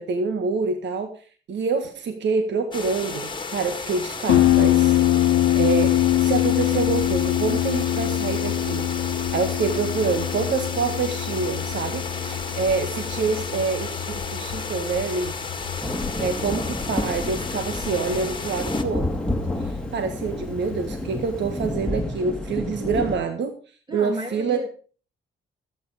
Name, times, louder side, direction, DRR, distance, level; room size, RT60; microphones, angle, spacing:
voice 1, 0.0-5.0 5.5-15.4 16.2-19.1 19.6-23.6 23.9-24.6, right 5 dB, 65° right, 1.7 m, -27 dB
sound 1, 2.7-18.8, left 4 dB, 25° left, 2.0 m, -33 dB
Harp, 4.3-21.7, left 13 dB, 75° left, 1.2 m, -25 dB
sound 2, 15.8-23.2, left 1 dB, 5° left, 2.1 m, -30 dB
voice 2, 23.9-24.7, right 1 dB, 20° right, 2.4 m, -33 dB
13.5 x 9.2 x 5.0 m
cardioid pair, 90°, 20 cm